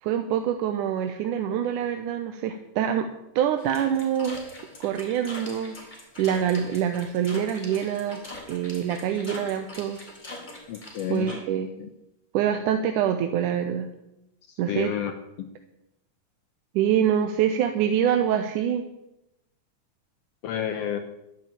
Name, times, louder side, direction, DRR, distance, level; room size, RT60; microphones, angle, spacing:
voice 1, 0.0-3.1 3.4-4.4 4.8-10.1 11.1-11.7 12.3-13.9 14.6-15.0 16.7-18.8, right 9 dB, 90° right, 7 dB, 2.3 m, -25 dB
sound 1, 3.6-11.4, left 2 dB, 15° left, 3.3 m, -43 dB
voice 2, 10.7-11.3 14.5-15.1 15.4-15.5 20.4-21.0, left 10 dB, 70° left, 7 dB, 1.6 m, -30 dB
12.0 x 8.7 x 8.6 m, 0.88 s
omnidirectional pair, 3.5 m